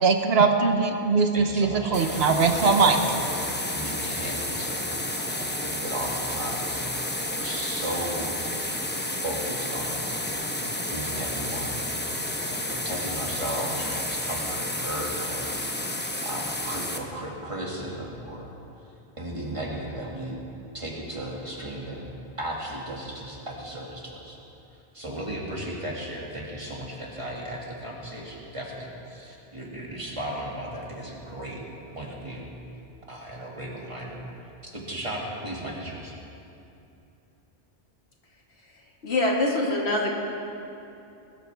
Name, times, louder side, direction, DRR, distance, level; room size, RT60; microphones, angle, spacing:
voice 1, 0.0-3.0, right 4 dB, 70° right, 6 dB, 1.1 m, -21 dB
voice 2, 1.3-5.0 5.4-8.4 9.2-10.1 10.9-11.8 12.4-15.5 15.8-15.9 16.2-18.5 19.2-20.4 20.7-22.1 22.4-24.4 24.9-31.6 31.9-32.5 33.1-34.2 34.6-36.1, right 1 dB, 30° right, -3 dB, 2.2 m, -35 dB
sound 1, 1.9-17.0, left 1 dB, 10° left, 0.8 m, -31 dB
voice 3, 38.6-40.1, left 2 dB, 85° left, -1 dB, 2.1 m, -25 dB
20.5 x 13.5 x 3.5 m, 2.8 s
omnidirectional pair, 1.1 m